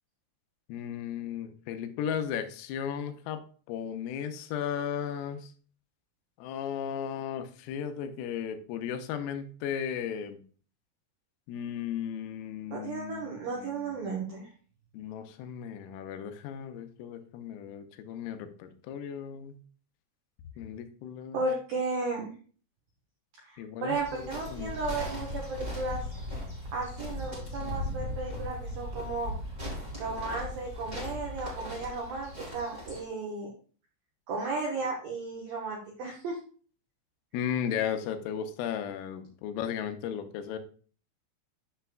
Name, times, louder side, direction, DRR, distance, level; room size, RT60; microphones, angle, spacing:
voice 1, 0.7-3.4 3.7-5.5 6.4-10.4 11.5-13.9 14.9-19.6 20.6-21.4 23.6-24.8 37.3-40.6, left 8 dB, 90° left, 7 dB, 3.3 m, -35 dB
voice 2, 12.7-14.5 21.3-22.3 23.5-26.1 26.7-29.3 30.0-33.5 34.3-36.4, right 3 dB, 80° right, -1 dB, 2.1 m, -34 dB
sound 1, 23.9-33.0, left 1 dB, 40° right, 0.6 m, -38 dB
9.9 x 6.8 x 2.2 m, 0.41 s
omnidirectional pair, 5.9 m